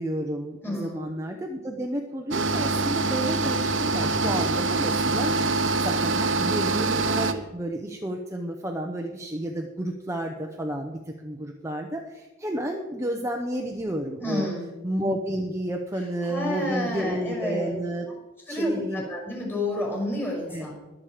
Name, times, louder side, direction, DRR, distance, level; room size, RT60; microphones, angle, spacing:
voice 1, 0.0-14.5 14.8-18.1 18.5-19.1 20.5-20.7, right 1 dB, 15° right, 2 dB, 0.9 m, -31 dB
voice 2, 0.6-1.1 14.2-14.7 16.2-17.7 18.5-20.7, left 1 dB, 10° left, -2 dB, 6.0 m, -29 dB
sound 1, 2.3-7.3, right 3 dB, 70° right, 1.0 m, -24 dB
21.5 x 7.4 x 5.0 m, 1.1 s
head